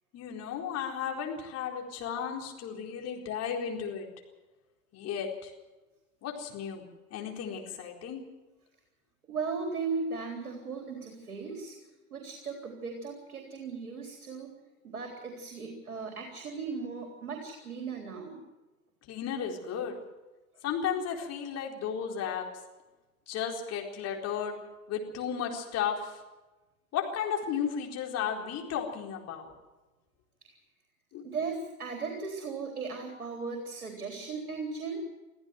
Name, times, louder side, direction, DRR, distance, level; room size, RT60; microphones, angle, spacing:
voice 1, 0.1-4.1 4.9-5.5 6.2-8.2 19.0-20.0 20.6-22.5 23.3-24.6 24.9-26.2 26.9-29.5 31.1-31.3, left 7 dB, 35° left, 1 dB, 4.3 m, -34 dB
voice 2, 9.3-11.8 12.1-14.5 14.8-18.4 31.2-35.0, right 4 dB, 75° right, 2 dB, 3.8 m, -37 dB
24.0 x 15.0 x 7.8 m, 1.1 s
figure-of-eight pair, 90°, 43 cm